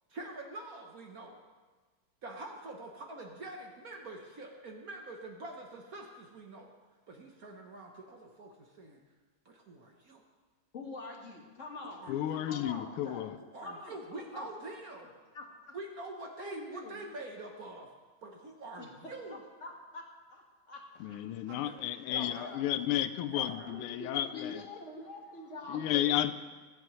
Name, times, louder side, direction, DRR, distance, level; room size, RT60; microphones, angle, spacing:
voice 1, 0.1-1.4 2.2-6.7 7.1-9.0 9.4-10.2 11.8-12.4 13.5-15.1 15.7-17.9 18.2-19.4 21.5-22.5 23.3-23.8, right 2 dB, 50° right, 1 dB, 1.2 m, -45 dB
voice 2, 10.7-12.0 12.5-13.3 13.6-14.5 15.3-15.7 16.4-17.0 18.8-20.0 20.3-21.2 21.8-22.6 23.7-26.1, left 2 dB, 35° left, 0 dB, 1.7 m, -46 dB
voice 3, 12.1-13.4 21.0-25.1 25.7-26.3, left 12 dB, 85° left, 12 dB, 1.5 m, -33 dB
23.5 x 8.4 x 3.1 m, 1.4 s
omnidirectional pair, 2.4 m